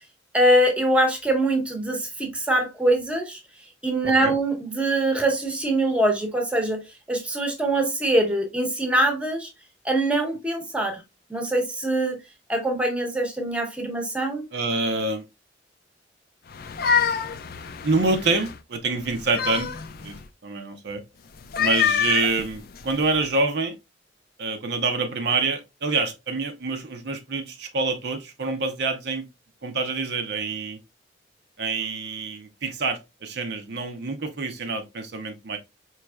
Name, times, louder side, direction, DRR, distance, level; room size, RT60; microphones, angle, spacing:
voice 1, 0.3-3.4 3.8-6.8 7.1-9.5 9.8-11.0 11.3-12.2 12.5-14.4, right 1 dB, 5° right, 0.9 m, -23 dB
voice 2, 14.5-15.2 17.8-19.7 20.0-20.2 20.4-21.0 21.6-23.8 24.4-29.3 29.6-30.8 31.6-35.6, right 3 dB, 65° right, 0.6 m, -26 dB
sound 1, 16.5-18.6 19.0-20.2 21.4-23.2, left 7 dB, 55° left, 0.4 m, -26 dB
4.6 x 3.1 x 2.2 m
head